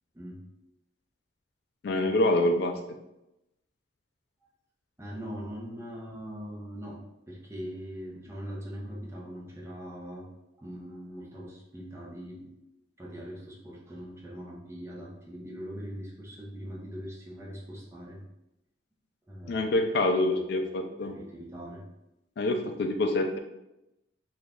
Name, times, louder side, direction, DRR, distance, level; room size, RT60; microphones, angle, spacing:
voice 1, 1.8-2.8 19.5-21.1 22.4-23.4, left 1 dB, 55° left, 5 dB, 0.3 m, -26 dB
voice 2, 5.0-7.0 7.3-10.3 10.6-12.5 13.0-18.2 19.3-19.8 20.2-21.8, equal, 15° right, -4 dB, 0.6 m, -41 dB
3.0 x 2.3 x 3.4 m, 0.90 s
head